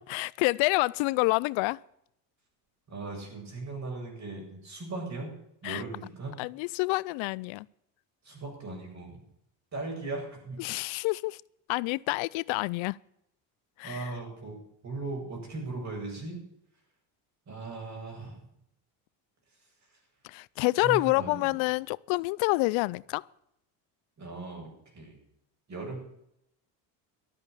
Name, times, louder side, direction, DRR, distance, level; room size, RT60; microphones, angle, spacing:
voice 1, 0.1-1.8 5.6-5.8 6.4-7.7 10.6-11.4 11.7-13.0 13.8-14.1 20.2-23.3, left 24 dB, 75° left, 0.6 m, -28 dB
voice 2, 2.9-5.3 5.6-6.4 8.2-9.2 9.7-10.6 13.8-14.6 14.8-16.4 17.5-18.5 19.5-20.0 20.8-21.4 24.2-25.2 25.7-26.0, right 3 dB, 35° right, 7.6 m, -38 dB
13.0 x 8.8 x 8.2 m
cardioid pair, 105°, 47 cm